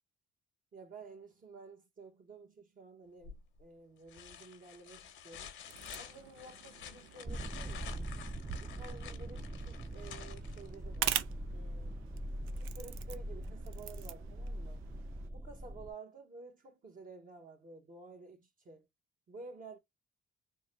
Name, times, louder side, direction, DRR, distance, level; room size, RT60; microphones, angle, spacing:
voice 1, 0.7-5.5 6.0-8.1 8.6-11.3 11.5-12.0 12.6-14.8 15.3-18.9 19.3-19.8, right 3 dB, 45° right, 1.0 m, -52 dB
sound 1, 3.2-3.6 4.1-11.0 12.8-12.9, left 9 dB, 70° left, 0.8 m, -50 dB
sound 2, 5.7-15.3, right 11 dB, 90° right, 0.4 m, -44 dB
sound 3, 7.3-15.9, right 1 dB, 10° right, 0.3 m, -42 dB
3.7 x 2.1 x 3.1 m
cardioid pair, 90°, 20 cm